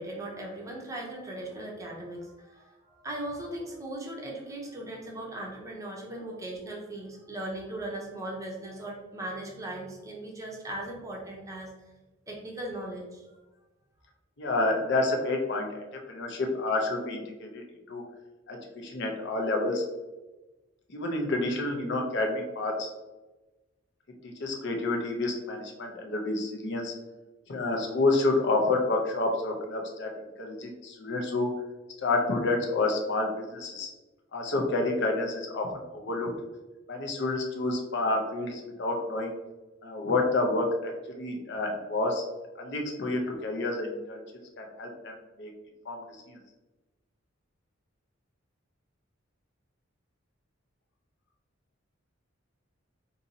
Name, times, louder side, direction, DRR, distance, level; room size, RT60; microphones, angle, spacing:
voice 1, 0.0-11.7 12.3-13.3, right 1 dB, 15° right, -2 dB, 0.6 m, -38 dB
voice 2, 14.4-18.0 18.5-19.8 20.9-22.9 24.2-26.9 27.5-30.1 30.4-31.5 32.0-33.9 34.3-36.3 36.9-39.3 39.8-42.2 42.6-44.2 44.6-45.5 45.9-46.4, left 2 dB, 55° left, 2 dB, 0.6 m, -29 dB
2.7 x 2.7 x 3.9 m, 1.1 s
head